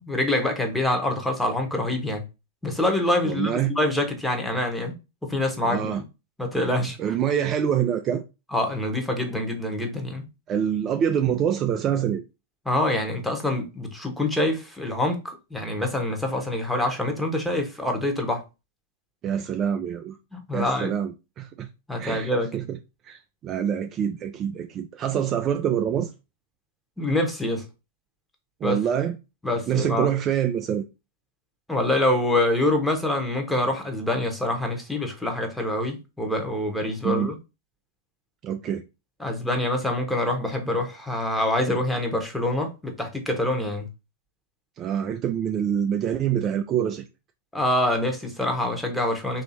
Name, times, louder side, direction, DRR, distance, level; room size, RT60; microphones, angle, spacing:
voice 1, 0.0-2.2 2.6-4.9 5.3-6.0 6.4-7.0 8.5-10.2 12.6-18.4 20.3-20.9 21.9-22.5 27.0-27.7 28.6-28.8 29.4-30.1 31.7-37.4 39.2-43.9 47.5-49.4, left 1 dB, 5° left, 1.1 m, -25 dB
voice 2, 3.2-3.7 5.6-6.0 7.0-8.2 10.5-12.2 19.2-20.2 20.5-21.7 22.0-22.8 23.0-26.1 28.6-29.2 29.7-30.9 37.0-37.3 38.4-38.8 44.8-47.1, right 9 dB, 30° right, 0.4 m, -25 dB
3.2 x 2.7 x 4.1 m
hypercardioid pair, 105°, 0 cm